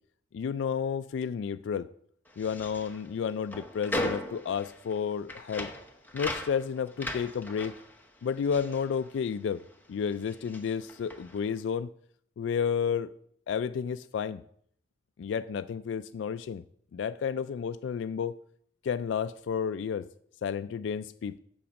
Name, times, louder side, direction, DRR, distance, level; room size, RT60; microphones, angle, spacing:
voice 1, 0.3-1.9 2.4-5.7 6.1-7.7 8.2-9.6 9.9-11.9 12.4-13.1 13.5-14.4 15.2-16.6 16.9-18.4 18.8-20.1 20.4-21.4, left 7 dB, 80° left, 12 dB, 0.3 m, -31 dB
sound 1, 2.3-9.8 10.0-11.5, left 1 dB, 10° left, 1.0 m, -38 dB
8.6 x 7.1 x 5.2 m, 0.66 s
head